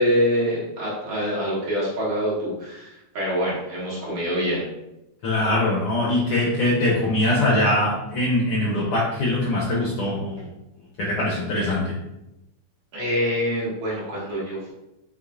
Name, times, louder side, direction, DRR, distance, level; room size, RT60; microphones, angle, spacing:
voice 1, 0.0-4.7 12.9-14.7, equal, 70° right, -9 dB, 2.9 m, -25 dB
voice 2, 5.2-10.5 11.0-11.8, left 1 dB, 70° left, -5 dB, 1.3 m, -22 dB
7.1 x 2.4 x 2.4 m, 0.91 s
omnidirectional pair, 3.4 m